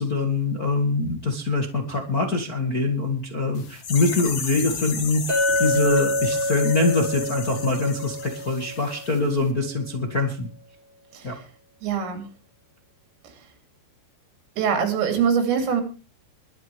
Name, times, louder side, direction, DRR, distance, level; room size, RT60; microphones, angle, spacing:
voice 1, 0.0-10.5 11.2-11.3, left 3 dB, 65° left, 2 dB, 0.8 m, -24 dB
sound 1, 3.5-9.2 9.4-9.5, left 6 dB, 45° left, 2.9 m, -34 dB
Chink clink, 5.3-9.5, left 1 dB, 30° right, 3.0 m, -27 dB
voice 2, 11.8-12.3 14.6-15.8, right 7 dB, 85° right, 4 dB, 5.8 m, -23 dB
23.0 x 10.5 x 3.5 m, 0.33 s
omnidirectional pair, 5.7 m